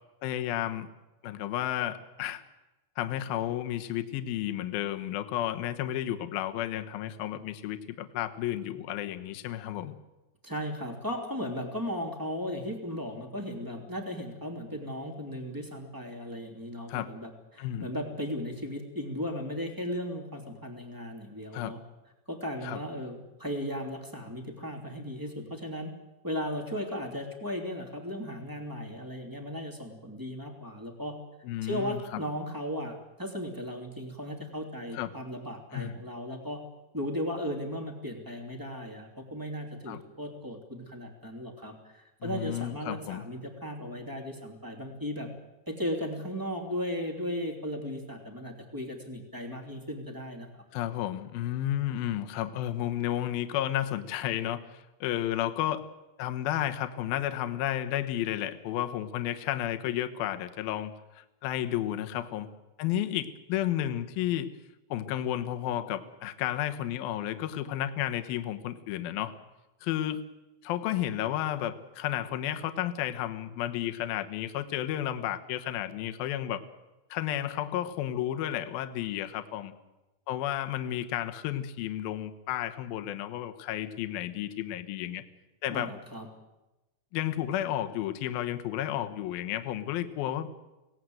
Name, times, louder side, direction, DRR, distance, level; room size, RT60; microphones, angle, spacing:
voice 1, 0.2-0.9 1.2-2.4 3.0-10.0 16.9-17.1 17.6-17.9 21.5-21.7 22.6-22.8 31.4-32.0 34.9-35.1 35.7-35.9 39.9-40.0 42.2-43.2 50.7-55.9 56.2-62.5 62.8-64.5 64.9-69.3 69.8-70.3 70.6-76.6 77.1-79.7 80.3-85.2 85.6-85.9 87.1-90.5, left 12 dB, 70° left, 8 dB, 2.3 m, -32 dB
voice 2, 10.4-21.8 22.3-25.9 26.2-31.1 31.6-36.6 36.9-45.3 45.6-50.6 85.7-86.3, equal, 10° right, 2 dB, 1.2 m, -36 dB
25.0 x 18.0 x 7.9 m, 1.0 s
omnidirectional pair, 5.8 m